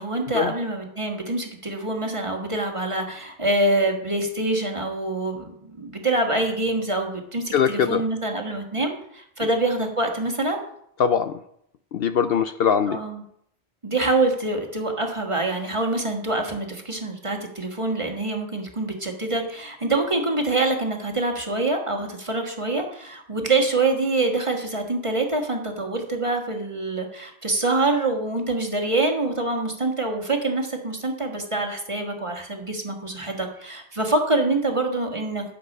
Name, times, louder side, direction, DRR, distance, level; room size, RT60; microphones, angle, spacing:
voice 1, 0.0-10.6 12.9-13.2 13.8-35.4, right 2 dB, 25° right, 2 dB, 1.6 m, -25 dB
voice 2, 7.5-8.0 11.0-11.4 11.9-13.0, left 7 dB, 65° left, 10 dB, 0.7 m, -21 dB
11.5 x 7.7 x 5.4 m, 0.72 s
omnidirectional pair, 1.2 m